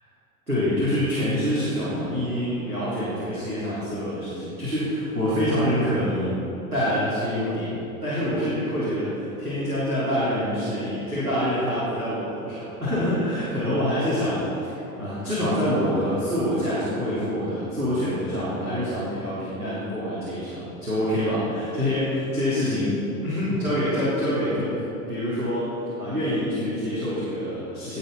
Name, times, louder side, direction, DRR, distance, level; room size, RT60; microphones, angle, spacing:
voice 1, 0.5-6.4 6.7-24.8 25.1-25.7 26.0-28.0, equal, 90° right, -11 dB, 4.0 m, -26 dB
19.0 x 8.4 x 5.8 m, 3.0 s
figure-of-eight pair, 80°, 44 cm